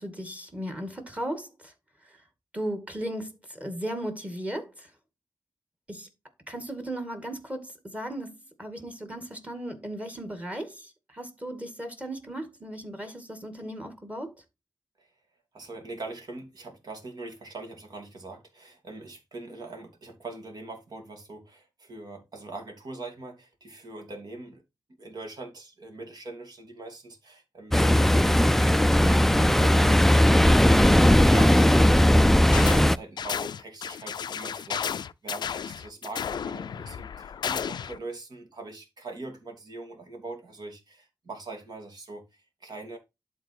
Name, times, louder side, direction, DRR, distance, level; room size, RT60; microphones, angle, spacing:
voice 1, 0.0-1.7 2.5-4.9 5.9-6.1 6.5-14.3, right 1 dB, 20° right, 2.2 m, -36 dB
voice 2, 15.5-24.6 25.0-43.0, right 2 dB, 60° right, 2.8 m, -42 dB
Ocean, 27.7-33.0, left 1 dB, 5° left, 0.3 m, -18 dB
sound 1, 32.5-32.9 33.2-38.0, left 8 dB, 75° left, 0.4 m, -33 dB
11.5 x 4.0 x 4.5 m
wide cardioid pair, 85°, 7 cm